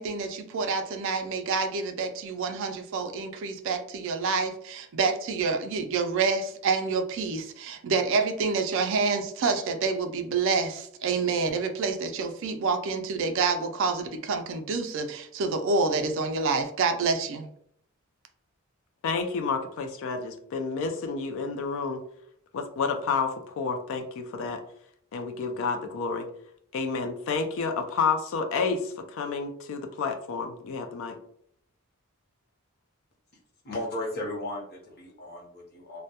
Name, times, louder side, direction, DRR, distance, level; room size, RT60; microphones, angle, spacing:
voice 1, 0.0-17.5, right 4 dB, 60° right, 7 dB, 0.3 m, -28 dB
voice 2, 19.0-22.0 22.5-24.6 25.1-26.3 26.7-31.2, left 4 dB, 60° left, 6 dB, 0.3 m, -30 dB
voice 3, 33.6-36.0, left 1 dB, 45° left, -1 dB, 0.7 m, -35 dB
2.1 x 2.1 x 2.7 m, 0.68 s
head